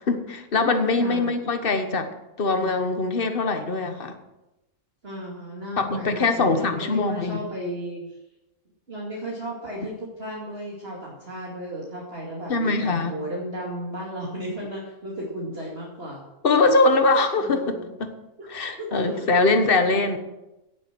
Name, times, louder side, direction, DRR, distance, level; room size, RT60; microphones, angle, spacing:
voice 1, 0.1-2.1 2.4-4.1 5.8-7.4 12.5-13.1 16.4-17.7 18.0-18.1 18.5-20.2, left 3 dB, 40° left, 7 dB, 1.4 m, -22 dB
voice 2, 1.0-1.3 5.0-8.2 8.9-16.2 17.4-17.9 18.8-19.2, equal, 40° right, -5 dB, 2.8 m, -34 dB
17.5 x 7.5 x 6.2 m, 0.97 s
omnidirectional pair, 1.6 m